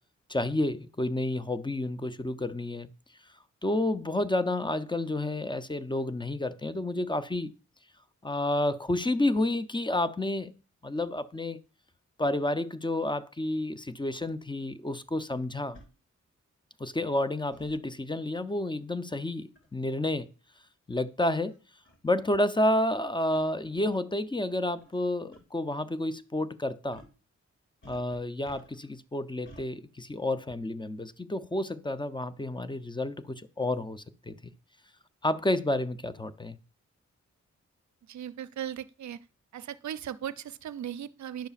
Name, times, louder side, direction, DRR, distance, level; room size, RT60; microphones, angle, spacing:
voice 1, 0.3-2.9 3.6-7.5 8.2-10.5 10.8-11.6 12.2-15.8 16.8-20.3 20.9-21.6 22.0-27.0 27.8-34.3 35.2-36.6, left 1 dB, 15° left, 0.6 m, -30 dB
sound 1, 14.2-14.3 15.7-15.9 17.5-17.8 19.6-19.8 20.6-20.7 21.5-21.6 21.9-22.0 23.3-23.5 24.8-25.0 25.3-25.4 26.9-27.2 27.8-28.9 29.5-29.7, equal, 40° left, 2.1 m, -53 dB
voice 2, 38.1-39.2 39.5-41.5, right 10 dB, 70° right, 0.5 m, -37 dB
10.0 x 6.6 x 2.4 m
cardioid pair, 55°, 29 cm